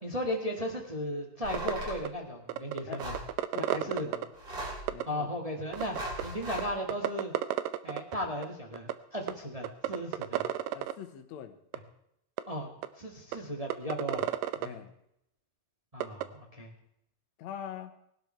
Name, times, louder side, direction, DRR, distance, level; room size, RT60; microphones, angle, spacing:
voice 1, 0.0-3.2 3.6-4.1 5.1-6.0 6.2-7.3 7.8-10.4 12.5-12.7 13.0-14.2 14.6-14.8 15.9-16.7, equal, 20° right, 0 dB, 1.0 m, -36 dB
sound 1, 1.4-2.0 3.0-3.3 4.3-4.9 5.7-6.7, right 1 dB, 40° right, 4.5 m, -38 dB
sound 2, 1.5-1.7 2.1-2.2 2.5-4.3 4.9-5.0 5.7-6.2 6.6-6.7 6.9-8.2 8.4-8.5 8.7-8.9 9.3-9.4 9.6-10.9 11.7-11.8 12.4-12.5 12.8-12.9 13.3-13.4 13.7-14.7 16.0-16.2, right 13 dB, 80° right, 2.4 m, -31 dB
voice 2, 3.5-4.3 4.9-5.3 10.7-11.6 14.6-14.9 17.4-17.9, left 9 dB, 65° left, 7 dB, 2.2 m, -43 dB
20.0 x 12.0 x 4.5 m, 0.76 s
omnidirectional pair, 3.9 m